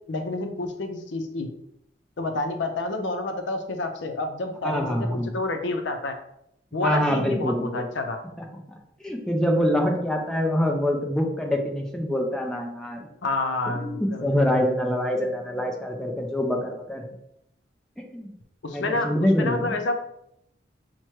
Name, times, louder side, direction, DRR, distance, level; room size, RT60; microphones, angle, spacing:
voice 1, 0.1-1.5 2.2-6.2 6.7-8.2 13.2-14.6 18.6-20.0, left 2 dB, 80° left, 5 dB, 0.5 m, -29 dB
voice 2, 4.6-5.3 6.8-7.9 9.0-13.1 13.7-17.1 18.0-18.3 18.7-19.8, equal, 5° left, 0 dB, 0.4 m, -25 dB
5.6 x 2.2 x 3.1 m, 0.78 s
head